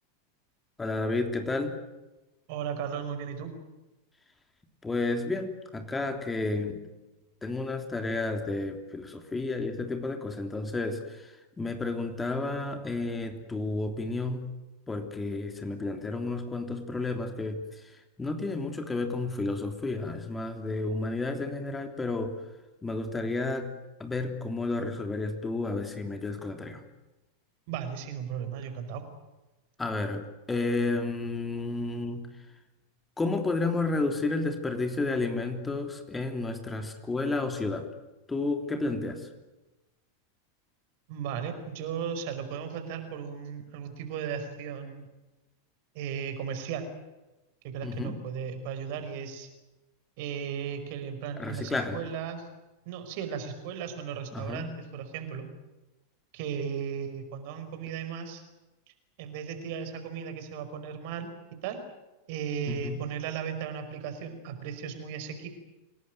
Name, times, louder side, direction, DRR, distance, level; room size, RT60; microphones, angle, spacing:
voice 1, 0.8-1.8 4.8-6.8 7.4-14.5 14.9-17.9 18.2-22.4 22.8-23.7 24.0-26.8 29.8-32.3 33.2-37.9 38.3-39.3 47.8-48.2 51.4-52.0 54.3-54.8 62.7-62.9, left 3 dB, 15° left, 6 dB, 3.2 m, -31 dB
voice 2, 2.5-3.5 27.7-29.0 41.1-45.1 45.9-46.9 47.6-49.5 50.2-52.5 52.8-55.5 56.3-58.4 59.2-61.3 61.6-61.8 62.3-65.5, right 7 dB, 55° right, 8 dB, 5.1 m, -36 dB
27.5 x 19.5 x 9.3 m, 1.1 s
figure-of-eight pair, 90°, 0 cm